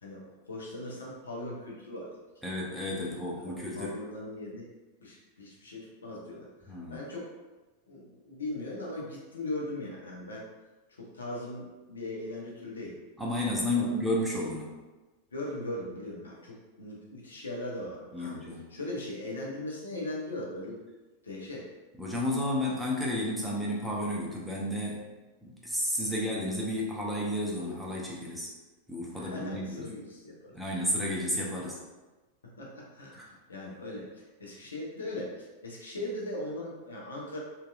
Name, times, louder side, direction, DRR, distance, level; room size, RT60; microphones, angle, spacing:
voice 1, 0.0-2.5 3.4-4.7 5.0-7.3 7.9-10.5 10.9-13.0 13.7-13.9 15.3-18.4 18.7-20.8 21.2-21.7 26.1-26.3 29.1-30.6 32.6-37.4, left 1 dB, 70° left, -3 dB, 0.6 m, -39 dB
voice 2, 2.4-3.9 6.7-7.0 13.2-14.7 18.1-18.6 22.0-25.1 25.4-28.5 28.9-29.9 30.5-31.8, left 1 dB, ahead, -5 dB, 0.6 m, -32 dB
2.7 x 2.3 x 2.3 m, 1.2 s
figure-of-eight pair, 90°, 0 cm